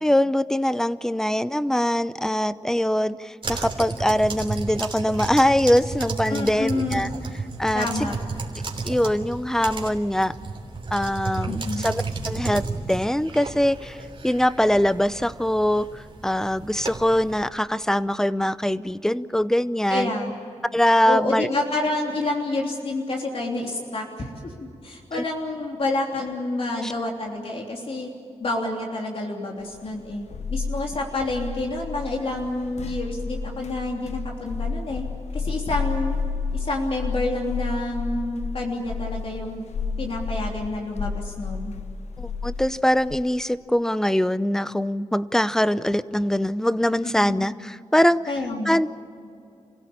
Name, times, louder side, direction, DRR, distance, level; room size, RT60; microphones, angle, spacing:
voice 1, 0.0-7.1 7.6-8.1 8.8-10.3 10.9-14.0 14.2-20.1 20.7-21.5 25.1-25.2 26.8-26.9 42.2-48.2 48.7-49.0, left 1 dB, 5° left, 15 dB, 0.7 m, -23 dB
sound 1, 3.4-17.5, right 3 dB, 50° right, 3.3 m, -33 dB
voice 2, 6.3-7.0 7.7-8.2 11.5-11.9 19.9-20.3 21.0-28.1 28.4-35.0 35.3-36.2 36.5-39.6 40.0-41.7 47.0-47.3 48.3-48.8, left 2 dB, 55° left, 0 dB, 3.3 m, -28 dB
sound 2, 29.7-43.2, left 4 dB, 80° left, 1.1 m, -31 dB
28.5 x 16.5 x 8.7 m, 2.5 s
wide cardioid pair, 90°, 11 cm